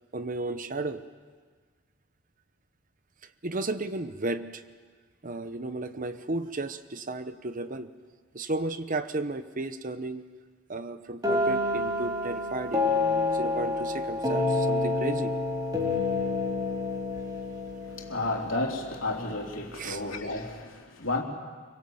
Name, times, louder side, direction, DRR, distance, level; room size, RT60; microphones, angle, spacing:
voice 1, 0.1-1.0 3.4-4.6 5.2-7.9 8.3-10.2 10.7-15.3 19.8-20.0, right 2 dB, 40° right, 11 dB, 0.9 m, -34 dB
sound 1, 11.2-19.0, left 2 dB, 20° right, 5.0 m, -28 dB
voice 2, 17.8-21.2, left 2 dB, 75° left, 1 dB, 3.6 m, -32 dB
25.5 x 24.0 x 7.9 m, 1.6 s
head